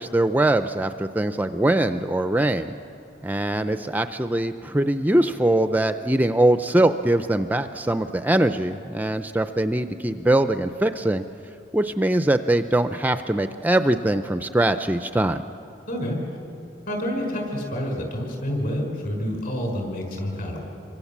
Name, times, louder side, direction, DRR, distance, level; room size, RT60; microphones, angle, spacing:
voice 1, 0.0-2.7 3.2-11.2 11.7-15.4, right 1 dB, 10° right, 9 dB, 0.5 m, -22 dB
voice 2, 15.9-16.2 16.9-20.6, equal, 50° left, 2 dB, 5.8 m, -28 dB
27.0 x 24.5 x 7.3 m, 2.7 s
head